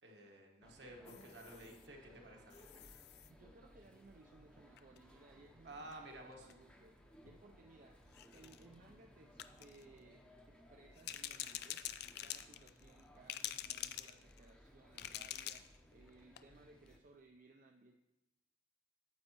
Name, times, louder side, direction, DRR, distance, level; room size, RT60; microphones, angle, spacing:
voice 1, 0.0-2.7 5.6-6.5, right 1 dB, 70° right, 0 dB, 1.4 m, -53 dB
sound 1, 0.6-17.0, equal, 5° left, 0.7 m, -62 dB
sound 2, 1.1-1.9 2.5-3.3 4.8-5.0 5.9-6.0 6.3-6.5 7.3-7.4 8.1-8.6 9.4-9.8 11.0-13.0 13.3-14.5 15.0-15.8 16.1-16.2 16.4-16.5, left 12 dB, 60° left, 0.4 m, -46 dB
voice 2, 3.3-7.0 7.2-8.0 8.3-11.8 12.2-18.0, right 2 dB, 50° right, 3 dB, 0.5 m, -62 dB
9.5 x 7.6 x 3.0 m, 0.93 s
head